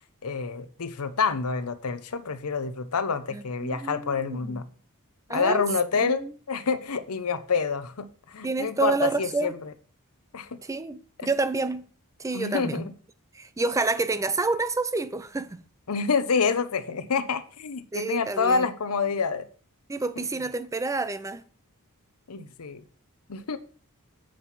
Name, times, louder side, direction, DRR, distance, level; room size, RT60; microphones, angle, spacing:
voice 1, 0.2-4.6 5.3-9.5 10.3-10.6 11.2-11.3 12.3-12.9 15.9-19.5 22.3-22.8 23.3-23.6, left 5 dB, 75° left, 0.8 m, -27 dB
voice 2, 3.3-4.6 5.3-5.6 6.0-6.3 8.4-9.5 10.6-11.9 12.2-12.9 13.3-15.6 17.9-18.7 19.9-21.4, right 3 dB, 15° right, 0.4 m, -29 dB
7.7 x 7.5 x 4.1 m
head